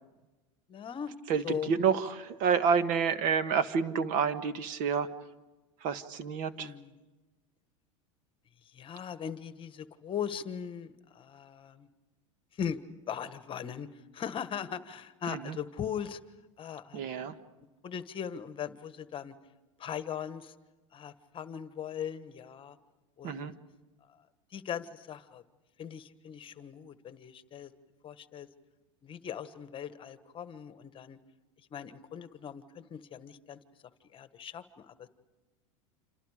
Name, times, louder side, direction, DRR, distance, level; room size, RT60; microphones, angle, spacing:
voice 1, 0.7-1.2 1.4-1.7 6.5-6.9 8.6-11.9 12.5-12.8 13.1-16.2 16.6-17.1 17.6-19.3 19.8-20.5 20.9-22.8 23.2-23.5 24.0-24.2 24.5-25.4 25.8-27.7 28.0-28.5 29.0-31.2 31.7-33.6 34.1-35.1, left 8 dB, 30° left, 12 dB, 1.4 m, -39 dB
voice 2, 1.3-5.1 5.8-6.7 15.3-15.6 16.9-17.3 23.2-23.5, right 6 dB, 55° right, 11 dB, 1.5 m, -29 dB
27.5 x 27.5 x 5.0 m, 1.1 s
supercardioid pair, 105°, 16 cm